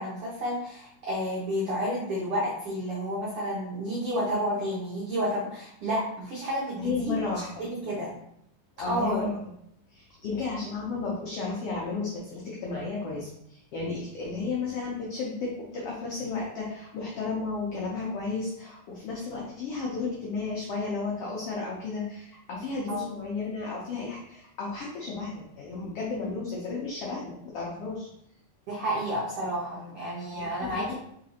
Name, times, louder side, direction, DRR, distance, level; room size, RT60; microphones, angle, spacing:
voice 1, 0.0-7.2 7.6-8.1 8.8-9.2 22.9-23.0 28.7-30.9, equal, 75° right, -5 dB, 1.2 m, -30 dB
voice 2, 6.8-7.5 8.8-9.4 9.9-28.1 30.3-30.9, left 4 dB, 90° left, -4 dB, 1.3 m, -33 dB
4.1 x 3.8 x 2.8 m, 0.74 s
omnidirectional pair, 3.6 m